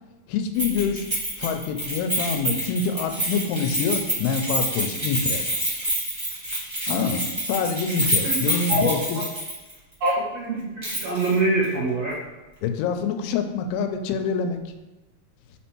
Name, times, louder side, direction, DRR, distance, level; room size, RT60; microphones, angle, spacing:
voice 1, 0.3-1.1 1.4-5.5 6.9-9.2 12.6-14.6, left 5 dB, 90° left, 6 dB, 2.6 m, -26 dB
Keys jangling, 0.6-9.7 10.0-10.1 10.8-11.3 11.6-11.7, right 1 dB, 30° right, 0.4 m, -27 dB
voice 2, 8.7-9.2 10.0-10.7 11.0-12.2, right 2 dB, 65° right, -8 dB, 1.7 m, -24 dB
5.6 x 4.3 x 4.4 m, 1.1 s
omnidirectional pair, 4.5 m